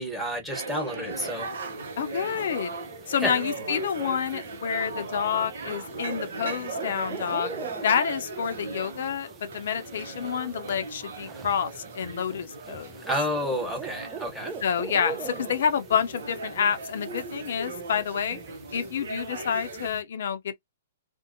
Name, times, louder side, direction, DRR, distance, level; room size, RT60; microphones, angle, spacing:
voice 1, 0.0-1.5 3.2-3.4 13.1-14.5, equal, ahead, 1.2 m, -30 dB
sound 1, 0.5-19.9, right 3 dB, 75° right, 0.6 m, -38 dB
sound 2, 1.1-20.0, right 6 dB, 20° right, 0.5 m, -44 dB
voice 2, 2.0-2.7 3.1-7.5 7.8-13.0 14.6-18.4 18.7-20.6, left 7 dB, 70° left, 0.5 m, -28 dB
2.6 x 2.1 x 2.6 m
hypercardioid pair, 125°, 0 cm